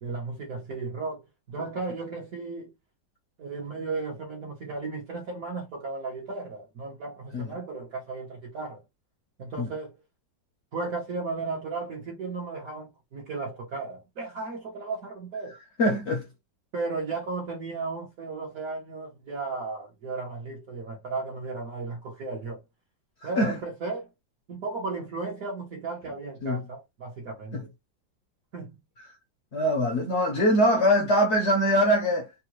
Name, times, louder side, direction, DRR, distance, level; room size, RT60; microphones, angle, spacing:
voice 1, 0.0-2.7 3.4-8.8 9.4-10.0 10.7-15.6 16.7-22.6 23.2-24.1 24.5-27.7 28.5-28.7, right 3 dB, 55° right, 1.2 m, -35 dB
voice 2, 15.8-16.3 23.2-23.5 26.4-26.6 27.5-27.6 29.5-32.3, equal, 55° left, 0.8 m, -23 dB
3.6 x 2.2 x 3.0 m
omnidirectional pair, 2.0 m